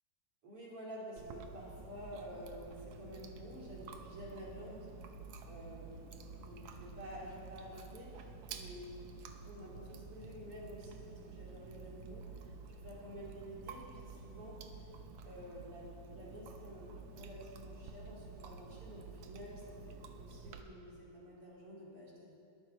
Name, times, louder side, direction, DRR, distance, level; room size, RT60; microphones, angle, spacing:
voice 1, 0.4-4.9 5.5-9.0 9.5-12.2 12.8-14.6 15.2-22.4, equal, 40° right, -5 dB, 3.5 m, -50 dB
Chewing mastication, 1.2-20.6, right 4 dB, 80° right, 1.6 m, -50 dB
21.5 x 12.0 x 4.6 m, 2.6 s
omnidirectional pair, 4.5 m